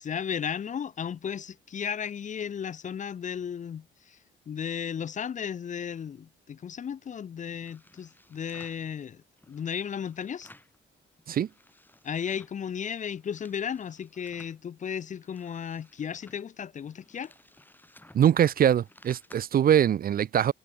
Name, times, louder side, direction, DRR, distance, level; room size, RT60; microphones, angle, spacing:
voice 1, 0.0-4.2 4.5-10.5 12.0-17.3, left 8 dB, 40° left, 0.6 m, -35 dB
sound 1, 7.5-8.9 9.4-10.8 11.1-12.6 13.0-14.6 15.1-19.4, left 1 dB, 10° left, 2.9 m, -57 dB
voice 2, 18.1-20.5, right 9 dB, 45° right, 0.5 m, -22 dB
cardioid pair, 90°, 20 cm